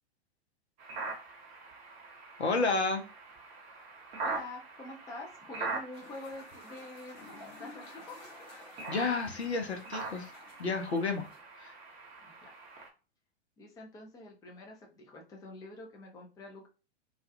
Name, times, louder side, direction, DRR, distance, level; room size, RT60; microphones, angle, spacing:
sound 1, 0.8-12.9, right 3 dB, 25° right, 0.7 m, -43 dB
voice 1, 2.4-3.0 8.9-10.3 10.6-11.3 11.6-11.7, left 3 dB, 80° left, 4 dB, 0.7 m, -31 dB
voice 2, 4.2-7.2 7.6-8.2 12.2-12.5 13.6-16.7, left 2 dB, 10° left, 0 dB, 0.5 m, -46 dB
sound 2, 5.9-11.4, left 3 dB, 35° left, 1.1 m, -53 dB
2.3 x 2.3 x 2.6 m, 0.33 s
figure-of-eight pair, 100°, 32 cm